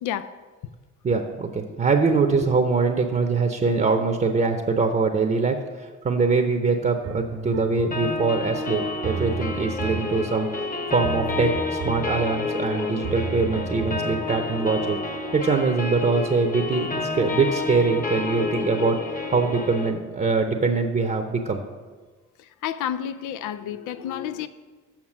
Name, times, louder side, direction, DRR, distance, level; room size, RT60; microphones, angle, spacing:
voice 1, 1.0-10.5 10.9-15.0 15.3-19.0 19.3-21.6, right 4 dB, 30° right, 5 dB, 0.8 m, -23 dB
sound 1, 7.0-15.0, right 5 dB, 75° right, 1.3 m, -34 dB
sound 2, 7.9-19.9, left 3 dB, 30° left, 1.0 m, -30 dB
voice 2, 22.6-24.5, left 10 dB, 85° left, 12 dB, 0.5 m, -30 dB
7.4 x 5.8 x 7.3 m, 1.4 s
cardioid pair, 90°, 30 cm